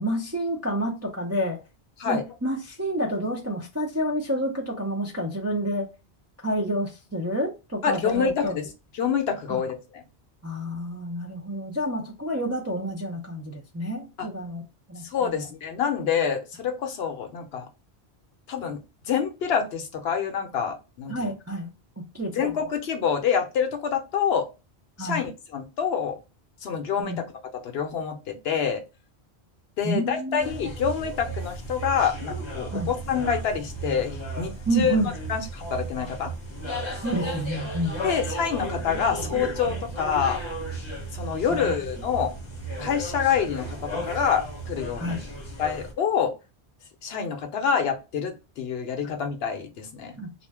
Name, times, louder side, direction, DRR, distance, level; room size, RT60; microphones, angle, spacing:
voice 1, 0.0-1.6 2.1-5.9 6.4-8.6 9.5-9.6 10.4-14.6 14.9-15.5 21.1-21.7 22.1-22.4 25.0-25.2 27.0-27.2 29.8-30.5 32.7-32.9 34.7-35.1 37.0-38.0 41.5-41.7 45.0-45.2 50.2-50.5, right 1 dB, 25° right, 0.4 m, -29 dB
voice 2, 7.8-8.7 9.0-10.0 14.2-14.3 15.1-17.6 18.5-18.8 19.1-21.2 22.4-24.5 25.0-26.2 26.6-27.1 27.5-28.8 29.8-35.0 35.3-36.3 38.0-40.4 41.1-42.3 42.8-45.2 45.6-46.3 47.0-50.2, left 7 dB, 70° left, 0.8 m, -27 dB
sound 1, 30.4-45.9, right 2 dB, 30° left, 0.7 m, -34 dB
2.5 x 2.1 x 3.3 m
omnidirectional pair, 1.1 m